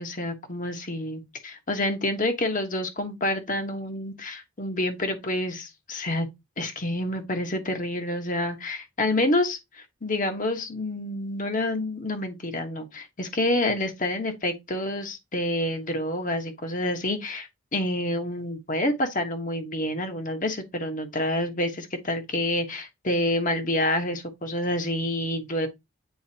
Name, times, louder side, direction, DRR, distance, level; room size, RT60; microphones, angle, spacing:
voice 1, 0.0-6.3 6.6-25.7, left 1 dB, 40° left, 1.3 m, -28 dB
9.4 x 4.0 x 2.9 m
head